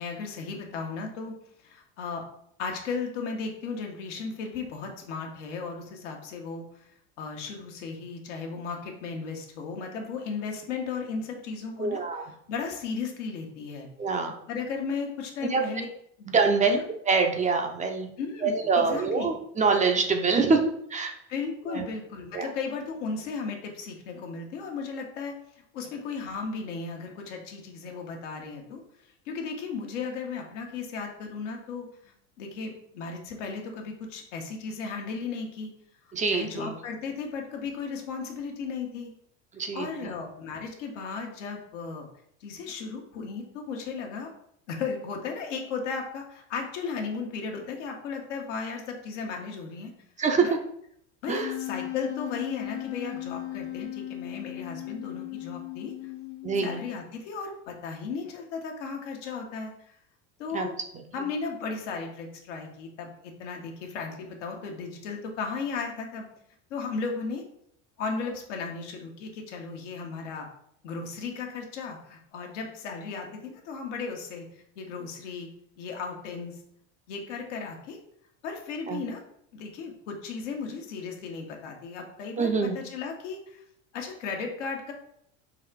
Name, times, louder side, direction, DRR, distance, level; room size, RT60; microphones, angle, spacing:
voice 1, 0.0-1.3 1.6-2.2 2.6-6.6 7.2-12.0 12.5-13.9 14.5-15.9 16.7-16.8 18.2-19.3 21.3-25.3 25.7-28.8 29.3-35.7 36.3-39.1 39.7-42.1 42.4-44.3 44.7-49.9 50.4-50.5 51.2-56.1 56.6-59.9 60.4-60.7 61.1-66.2 66.7-67.4 68.0-70.5 70.8-75.5 75.8-76.5 77.1-78.0 78.4-79.2 79.5-83.6 83.9-84.9, left 5 dB, 85° left, 2 dB, 1.1 m, -35 dB
voice 2, 11.8-12.3 14.0-14.3 15.5-15.6 16.3-16.8 17.1-18.1 18.4-21.1 21.7-21.8 22.3-22.5 36.1-36.7 39.5-39.9 50.2-50.5 51.3-51.5 56.4-56.8 60.5-60.7 60.9-61.0 78.9-79.0 82.4-82.8, right 4 dB, 20° right, 4 dB, 0.5 m, -25 dB
Wind instrument woodwind instrument, 51.4-57.1, left 15 dB, 35° left, 0.6 m, -37 dB
3.9 x 2.5 x 4.5 m, 0.70 s
supercardioid pair, 105°, 36 cm